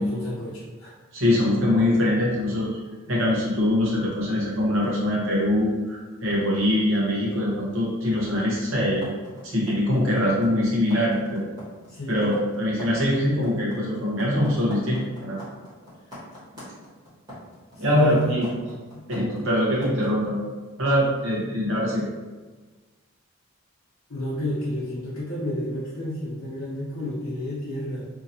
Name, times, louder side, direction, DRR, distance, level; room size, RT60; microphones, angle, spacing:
voice 1, 0.0-0.9 11.8-12.2 16.0-16.2 17.7-18.5 24.1-28.0, left 1 dB, 85° left, -10 dB, 0.8 m, -31 dB
voice 2, 1.1-2.7 3.1-9.1 9.4-11.5 12.1-15.4 17.8-18.5 19.1-20.4 20.8-22.0, left 1 dB, 65° right, -5 dB, 1.0 m, -23 dB
sound 1, 9.0-20.1, left 1 dB, 20° right, 1.4 m, -41 dB
2.8 x 2.8 x 2.6 m, 1.3 s
head